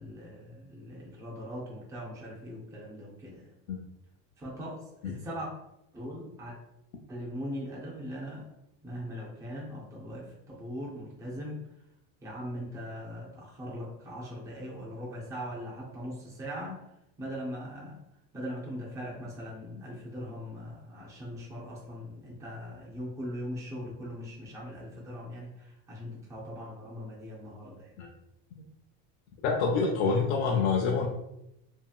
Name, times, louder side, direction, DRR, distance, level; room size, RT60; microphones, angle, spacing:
voice 1, 0.0-3.5 4.4-5.5 5.9-6.6 7.1-8.5 8.8-11.6 12.2-16.8 17.2-18.0 18.3-27.9, equal, 10° right, -4 dB, 0.4 m, -40 dB
voice 2, 29.4-31.1, left 4 dB, 90° left, -2 dB, 0.6 m, -27 dB
2.8 x 2.8 x 2.3 m, 0.84 s
cardioid pair, 160°, 38 cm